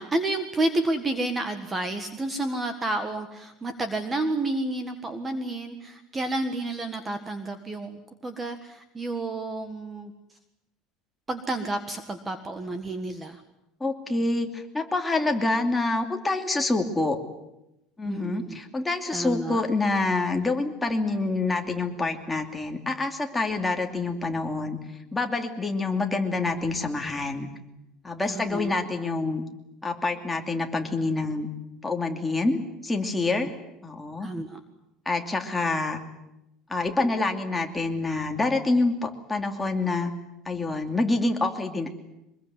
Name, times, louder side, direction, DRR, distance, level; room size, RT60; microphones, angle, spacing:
voice 1, 0.0-10.1 11.3-13.4 18.1-18.6 19.1-19.6 28.2-28.9 34.2-34.6, right 2 dB, 15° right, 8 dB, 1.6 m, -30 dB
voice 2, 13.8-17.2 18.0-24.8 25.1-27.5 28.0-29.5 29.8-31.5 31.8-33.5 33.8-34.3 35.1-36.0 36.7-40.1 40.4-41.9, left 3 dB, 10° left, 3 dB, 2.7 m, -27 dB
24.5 x 21.5 x 9.6 m, 0.89 s
cardioid pair, 160°, 0 cm